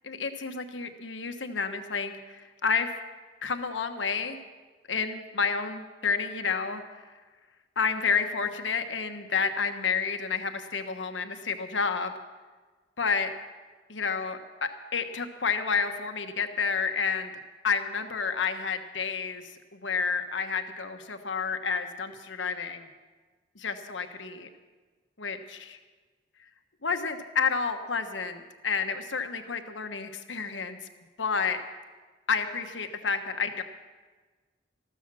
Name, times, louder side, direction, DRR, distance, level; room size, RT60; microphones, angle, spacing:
voice 1, 0.0-2.9 3.4-4.4 4.9-7.0 7.8-12.1 13.0-13.3 13.9-17.3 17.6-22.9 23.5-24.5 25.2-25.8 26.8-30.8 31.2-31.6 32.3-33.6, left 5 dB, 85° left, 7 dB, 1.2 m, -30 dB
14.0 x 13.5 x 6.2 m, 1.4 s
head